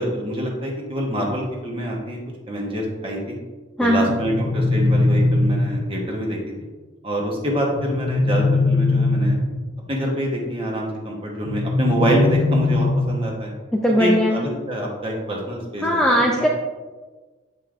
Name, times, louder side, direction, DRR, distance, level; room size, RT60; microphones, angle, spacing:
voice 1, 0.0-2.2 2.5-3.4 3.8-6.7 7.0-9.4 9.9-13.5 14.0-16.5, equal, 25° right, -1 dB, 1.0 m, -25 dB
voice 2, 3.8-4.1 13.7-14.5 15.8-16.5, equal, 5° left, -2 dB, 0.3 m, -19 dB
sound 1, 4.1-6.1 7.8-9.8 11.5-13.5, left 2 dB, 80° left, 0.6 m, -21 dB
7.6 x 5.3 x 2.5 m, 1.3 s
head